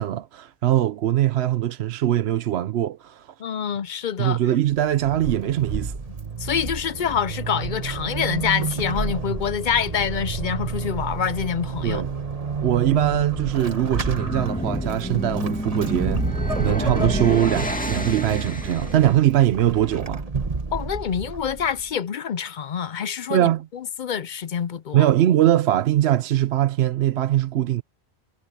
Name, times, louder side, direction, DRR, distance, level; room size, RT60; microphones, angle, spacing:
voice 1, 0.0-3.3 4.2-6.0 11.8-12.1 12.6-20.2 23.3-23.7 24.9-27.8, right 12 dB, 75° right, 0.9 m, -22 dB
voice 2, 3.4-4.4 6.4-12.0 16.8-17.2 20.7-23.5 24.0-25.1, left 8 dB, 55° left, 0.6 m, -26 dB
Vehicle / Accelerating revving vroom / Squeak, 4.7-21.9, right 4 dB, 35° right, 1.3 m, -30 dB
sound 1, 13.8-19.1, left 1 dB, 5° left, 2.2 m, -29 dB
omnidirectional pair, 1.1 m